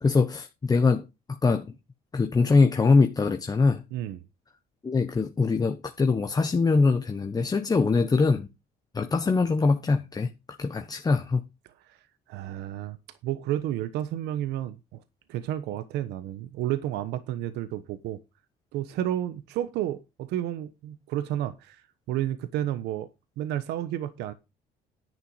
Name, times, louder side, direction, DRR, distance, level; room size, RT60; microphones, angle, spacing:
voice 1, 0.0-1.7 2.1-3.8 4.8-8.5 8.9-10.3 10.6-11.4, left 4 dB, 20° left, 1.2 m, -23 dB
voice 2, 3.9-4.2 11.6-12.0 12.3-13.0 13.2-15.0 15.3-18.2 18.7-23.1 23.4-24.3, right 12 dB, 85° right, 1.1 m, -31 dB
10.5 x 8.9 x 4.7 m
cardioid pair, 110°, 17 cm